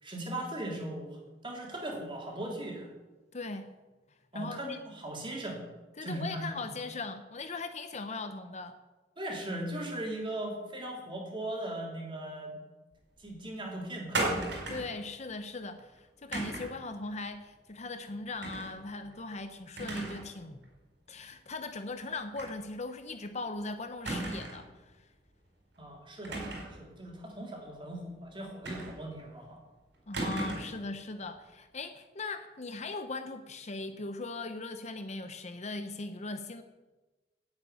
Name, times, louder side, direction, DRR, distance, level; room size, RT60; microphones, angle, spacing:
voice 1, 0.0-2.9 4.3-5.6 6.0-6.6 9.2-12.6 13.2-14.4 25.8-26.4 26.7-29.6, right 1 dB, 30° right, -1 dB, 3.5 m, -39 dB
voice 2, 3.3-3.7 4.3-4.8 6.0-8.8 14.7-20.6 21.1-25.0 30.1-36.6, left 3 dB, 40° left, 8 dB, 0.8 m, -39 dB
sound 1, 14.1-15.0 16.3-16.8 18.4-18.7 19.1-19.2 19.8-20.3 20.6-20.7 22.4-22.6 22.9-23.0 24.1-24.7 26.2-26.8 28.7-29.2 30.1-30.8, right 2 dB, 70° right, 4.6 m, -35 dB
10.5 x 8.7 x 9.2 m, 1.2 s
head